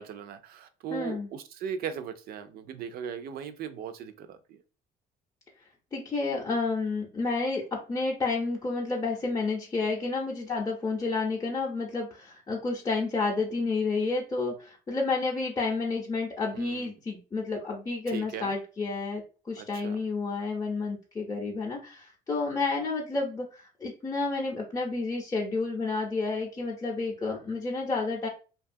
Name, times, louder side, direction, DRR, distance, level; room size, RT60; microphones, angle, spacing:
voice 1, 0.0-4.6 16.5-16.9 18.1-18.5 19.6-20.0, right 8 dB, 65° right, 9 dB, 0.4 m, -38 dB
voice 2, 0.9-1.3 5.9-28.3, left 3 dB, 20° left, -3 dB, 0.6 m, -30 dB
2.7 x 2.3 x 2.5 m, 0.35 s
cardioid pair, 110°, 17 cm